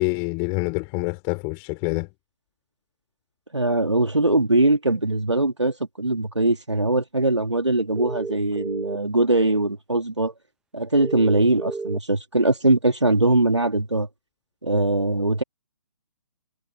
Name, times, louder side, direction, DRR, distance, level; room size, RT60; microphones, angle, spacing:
voice 1, 0.0-2.1, left 40 dB or more, 25° left, 5.4 m, -26 dB
voice 2, 3.5-10.3 10.7-14.1 14.6-15.4, right 2 dB, 85° right, 3.2 m, -21 dB
sound 1, 8.0-9.0 11.0-12.0, right 4 dB, 5° right, 1.4 m, -31 dB
figure-of-eight pair, 135°, 15 cm